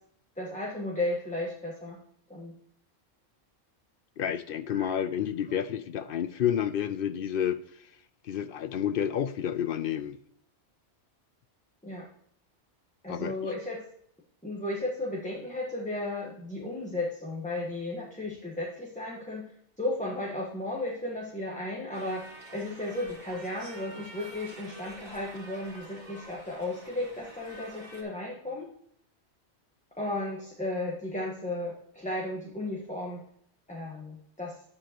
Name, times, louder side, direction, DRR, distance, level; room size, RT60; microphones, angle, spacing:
voice 1, 0.4-2.0 2.3-2.5 4.7-4.9 11.8-12.1 13.0-13.9 14.4-19.5 19.8-28.7 30.0-33.2 33.7-34.5, left 2 dB, 5° left, -2 dB, 1.2 m, -34 dB
voice 2, 4.2-7.6 8.2-10.2 13.1-13.3, left 9 dB, 60° left, 13 dB, 0.7 m, -30 dB
sound 1, 21.9-28.0, right 1 dB, 40° right, 2.2 m, -47 dB
8.7 x 7.6 x 2.9 m, 0.67 s
omnidirectional pair, 1.2 m